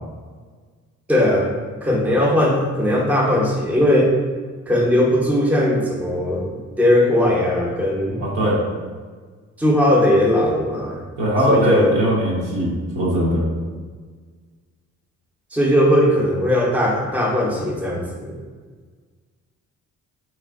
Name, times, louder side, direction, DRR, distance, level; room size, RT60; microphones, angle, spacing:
voice 1, 1.1-1.5 1.8-4.1 4.7-8.2 9.6-11.0 11.5-11.9 15.5-18.4, left 1 dB, 5° right, -2 dB, 0.6 m, -18 dB
voice 2, 8.2-8.6 11.2-13.4, equal, 80° right, -5 dB, 1.2 m, -20 dB
3.3 x 3.2 x 2.5 m, 1.5 s
cardioid pair, 90°, 30 cm